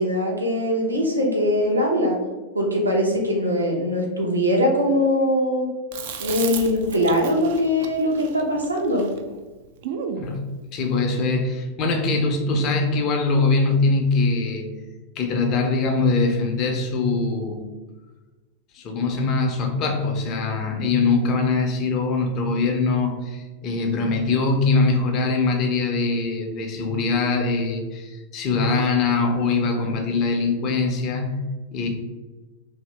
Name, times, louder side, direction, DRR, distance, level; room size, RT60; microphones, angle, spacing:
voice 1, 0.0-2.2 2.5-5.7 6.2-9.1, equal, 85° right, -1 dB, 0.7 m, -21 dB
Chewing mastication, 5.9-10.3, right 7 dB, 55° right, 0.3 m, -34 dB
voice 2, 10.2-14.7 15.2-17.7 18.7-31.4 31.7-31.9, left 3 dB, 40° left, 3 dB, 0.7 m, -22 dB
2.8 x 2.7 x 3.2 m, 1.2 s
figure-of-eight pair, 90°, 0 cm